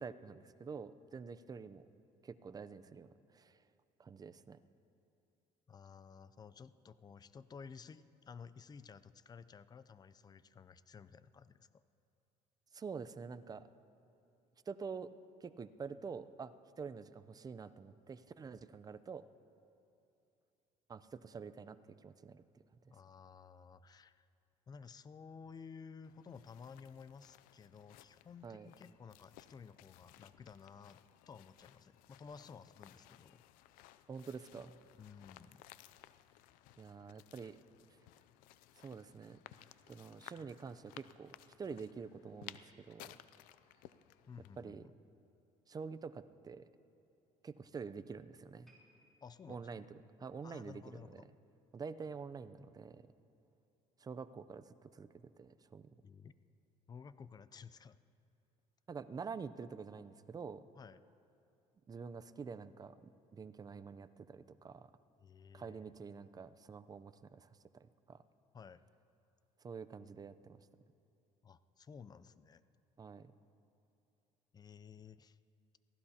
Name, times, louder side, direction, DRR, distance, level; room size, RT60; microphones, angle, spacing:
voice 1, 0.0-1.9 2.2-3.6 4.0-4.6 12.7-13.7 14.7-15.1 15.4-19.2 20.9-22.4 28.4-28.7 34.1-34.8 36.8-37.6 38.8-39.4 39.9-43.2 44.6-44.8 45.7-46.7 47.4-48.7 49.5-49.8 50.2-51.2 51.7-53.1 54.0-55.9 58.9-60.6 61.9-64.9 65.5-68.2 69.6-70.7 73.0-73.3, right 5 dB, 25° right, 13 dB, 0.5 m, -47 dB
voice 2, 5.7-11.8 22.9-24.3 24.7-31.0 31.3-33.4 35.0-35.6 44.3-44.9 49.2-49.8 50.4-51.3 56.0-56.4 56.9-58.0 60.7-61.0 65.2-65.9 68.5-68.8 71.4-72.6 74.5-75.4, left 6 dB, 30° left, 15 dB, 0.5 m, -54 dB
sound 1, 26.0-44.6, left 14 dB, 80° left, 0.4 m, -59 dB
sound 2, 48.6-51.9 52.2-52.5 53.2-53.3, right 1 dB, ahead, 3.5 m, -73 dB
23.0 x 15.5 x 2.9 m, 2.7 s
supercardioid pair, 90°, 14 cm